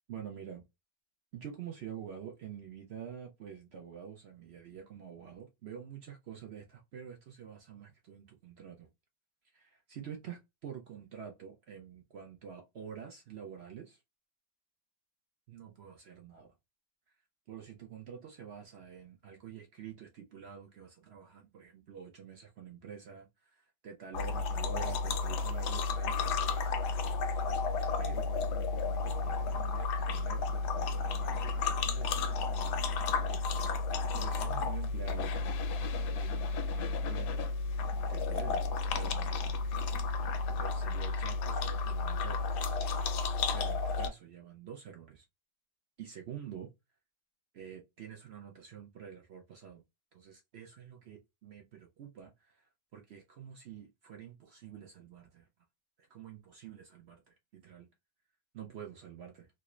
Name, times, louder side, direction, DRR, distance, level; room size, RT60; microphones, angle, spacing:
voice 1, 0.1-0.6 1.3-8.9 9.5-14.0 15.5-16.5 17.5-28.3 29.0-32.8 33.1-33.4 34.1-37.4 38.1-38.6 38.9-39.7 40.5-42.4 43.5-45.3 46.0-46.7 47.5-49.8 50.1-55.5 56.0-57.9 58.5-59.5, right 8 dB, 75° right, 0.6 m, -48 dB
sound 1, 24.1-44.1, left 4 dB, 75° left, 1.1 m, -32 dB
3.1 x 2.5 x 2.9 m
omnidirectional pair, 1.8 m